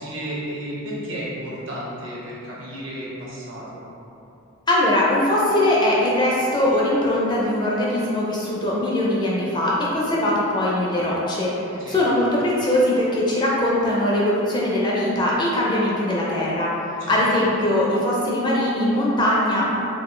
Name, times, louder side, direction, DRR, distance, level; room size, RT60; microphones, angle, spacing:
voice 1, 0.0-3.8 11.8-12.0 17.0-17.2, right 1 dB, 60° right, -6 dB, 0.9 m, -33 dB
voice 2, 4.7-16.7 17.1-19.7, left 1 dB, 20° left, -5 dB, 0.4 m, -21 dB
4.2 x 2.4 x 3.1 m, 2.9 s
head